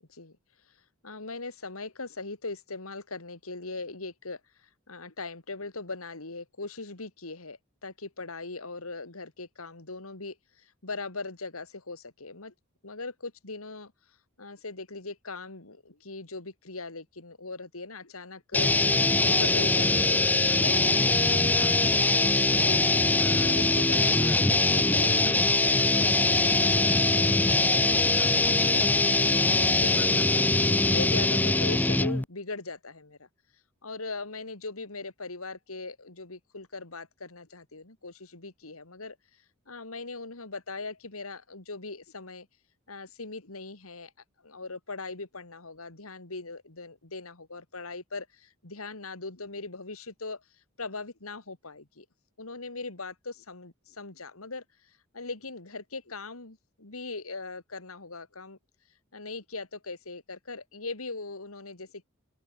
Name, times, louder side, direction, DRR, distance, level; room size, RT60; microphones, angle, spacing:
voice 1, 1.0-12.5 12.8-13.9 14.4-18.8 19.2-28.9 29.2-33.3 33.8-42.5 42.9-44.1 44.4-50.4 50.8-52.1 52.4-58.6 59.1-62.0, left 3 dB, 90° left, 2.8 m, -40 dB
sound 1, 18.5-32.2, left 2 dB, 10° left, 0.4 m, -23 dB
open air
head